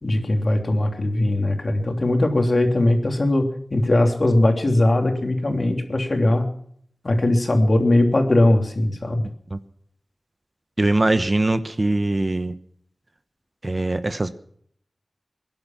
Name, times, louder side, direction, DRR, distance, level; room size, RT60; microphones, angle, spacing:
voice 1, 0.0-6.5 7.0-9.3, left 1 dB, 55° left, 4 dB, 3.1 m, -20 dB
voice 2, 10.8-12.5 13.6-14.3, right 2 dB, 40° right, 11 dB, 1.0 m, -22 dB
22.5 x 11.0 x 6.0 m, 0.64 s
wide cardioid pair, 60°, 0 cm